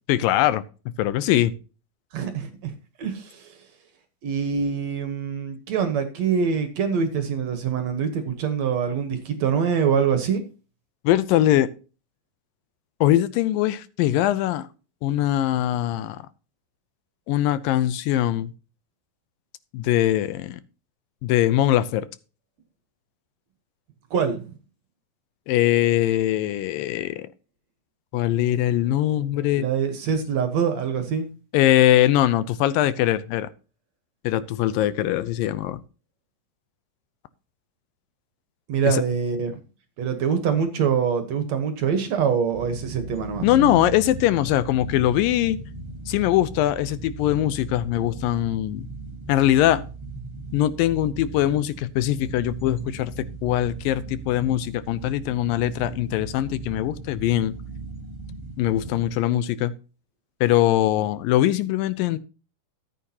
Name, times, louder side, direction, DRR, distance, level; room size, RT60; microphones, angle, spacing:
voice 1, 0.1-0.6 1.0-1.5 11.0-11.7 13.0-14.7 15.0-16.2 17.3-18.5 19.7-20.6 21.2-22.1 25.5-27.3 28.1-29.6 31.5-33.5 34.2-35.8 38.8-39.0 43.4-45.6 46.1-48.9 49.3-49.8 50.5-57.5 58.6-59.7 60.4-62.2, left 13 dB, 85° left, 2.4 m, -22 dB
voice 2, 2.1-3.5 4.2-10.4 24.1-24.5 29.6-31.3 38.7-39.6 40.0-43.5, right 7 dB, 60° right, 2.1 m, -24 dB
sound 1, 42.5-59.1, right 2 dB, 10° right, 1.5 m, -37 dB
13.5 x 8.7 x 2.9 m
omnidirectional pair, 4.0 m